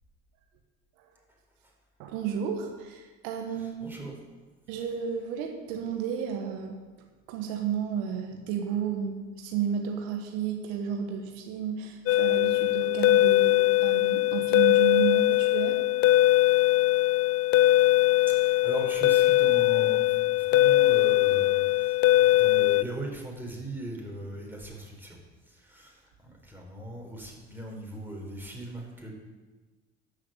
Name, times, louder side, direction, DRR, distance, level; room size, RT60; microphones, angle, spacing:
voice 1, 2.0-4.0 4.7-6.8 7.3-15.8, right 7 dB, 75° right, 3 dB, 1.5 m, -32 dB
voice 2, 3.6-4.2 18.3-25.2 25.5-29.1, right 1 dB, 5° right, -1 dB, 4.5 m, -39 dB
sound 1, 12.1-22.8, left 16 dB, 45° left, 0.4 m, -21 dB
12.5 x 6.6 x 7.5 m, 1.3 s
hypercardioid pair, 60°, 35 cm